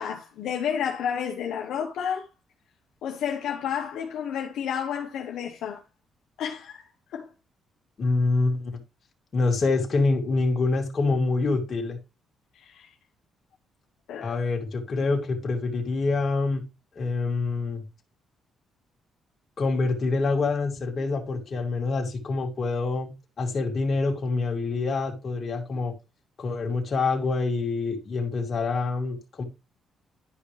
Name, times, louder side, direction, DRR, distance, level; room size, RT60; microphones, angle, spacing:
voice 1, 0.0-2.2 3.0-5.8 6.4-7.3 12.5-12.9 14.1-14.4, left 8 dB, 80° left, 1.2 m, -31 dB
voice 2, 8.0-8.8 9.3-12.0 14.2-16.6 17.0-17.8 19.6-23.1 23.4-25.9 26.4-29.4, left 3 dB, 45° left, 2.6 m, -26 dB
11.5 x 5.1 x 3.4 m
cardioid pair, 90°, 0 cm